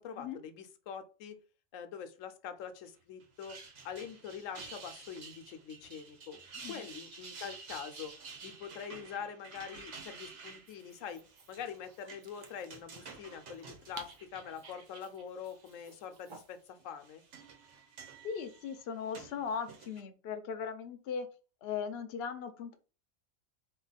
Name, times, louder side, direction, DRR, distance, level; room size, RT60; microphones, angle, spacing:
voice 1, 0.0-1.4 1.7-3.6 3.8-6.4 6.7-8.1 8.4-17.2, left 7 dB, 80° left, 9 dB, 1.0 m, -44 dB
sound 1, 3.2-15.0 15.4-16.0 16.8-20.0, right 4 dB, 65° right, 1.4 m, -51 dB
Dog, 10.5-16.7, right 4 dB, 50° right, 0.7 m, -55 dB
voice 2, 18.2-21.3 21.6-22.8, left 6 dB, 60° left, 8 dB, 0.8 m, -38 dB
4.0 x 2.9 x 4.0 m, 0.35 s
omnidirectional pair, 1.3 m